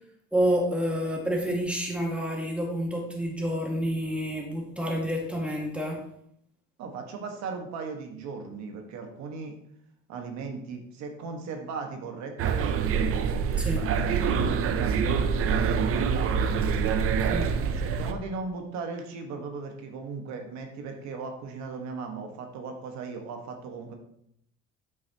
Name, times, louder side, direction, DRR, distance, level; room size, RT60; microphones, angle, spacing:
voice 1, 0.3-6.0 13.6-13.9 17.3-17.5, equal, 5° right, -1 dB, 1.9 m, -28 dB
voice 2, 6.8-9.6 10.1-13.1 13.6-16.6 17.6-23.9, right 4 dB, 70° right, 4 dB, 1.5 m, -37 dB
sound 1, 12.4-18.1, right 6 dB, 50° right, 0.6 m, -25 dB
8.1 x 6.2 x 2.9 m, 0.72 s
cardioid pair, 120°, 29 cm